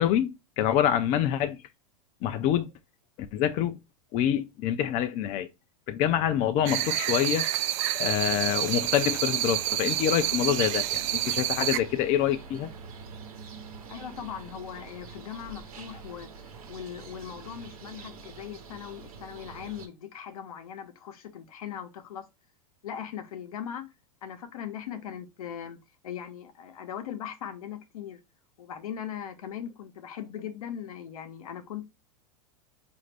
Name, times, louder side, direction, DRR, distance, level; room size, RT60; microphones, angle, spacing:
voice 1, 0.0-1.6 2.2-2.7 3.3-3.8 4.1-5.5 5.9-7.5 7.9-12.7, left 10 dB, 40° left, 0.4 m, -26 dB
sound 1, 6.7-11.8, right 14 dB, 60° right, 0.4 m, -28 dB
sound 2, 8.1-19.9, right 5 dB, 80° right, 0.9 m, -45 dB
voice 2, 13.9-16.3 16.7-22.3 22.8-23.9 24.2-28.2 28.6-31.8, left 9 dB, 85° left, 0.8 m, -39 dB
4.9 x 2.6 x 3.2 m
supercardioid pair, 125°, 18 cm